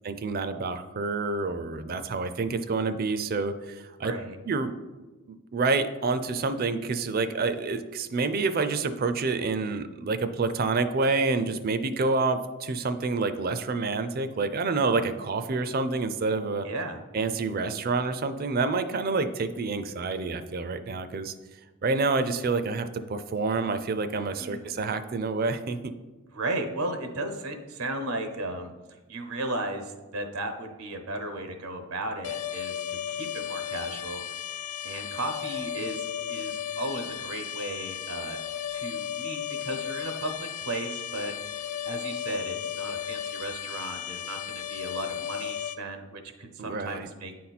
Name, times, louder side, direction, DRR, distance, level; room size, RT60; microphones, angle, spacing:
voice 1, 0.0-4.1 4.5-4.7 5.5-16.7 17.1-21.3 21.8-25.9 46.6-47.1, right 3 dB, 45° right, 11 dB, 0.4 m, -28 dB
voice 2, 4.0-4.4 16.6-17.0 24.4-24.7 26.3-28.7 29.1-34.2 34.6-38.4 38.7-47.3, right 2 dB, 90° right, 6 dB, 0.9 m, -35 dB
sound 1, 32.2-45.8, left 9 dB, 90° left, 0.4 m, -35 dB
9.4 x 4.3 x 4.1 m, 1.2 s
head